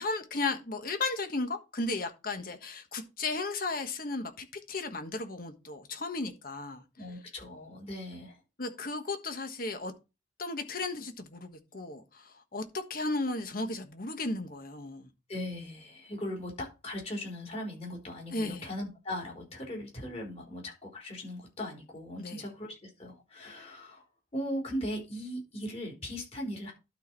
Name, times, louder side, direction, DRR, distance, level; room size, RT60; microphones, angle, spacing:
voice 1, 0.0-6.8 8.6-9.9 10.4-15.1 18.3-18.7 22.2-22.4, left 3 dB, 55° left, 1.4 m, -35 dB
voice 2, 7.0-8.4 15.3-24.0 24.3-26.7, left 1 dB, 35° left, 3.8 m, -39 dB
12.0 x 4.3 x 4.6 m
head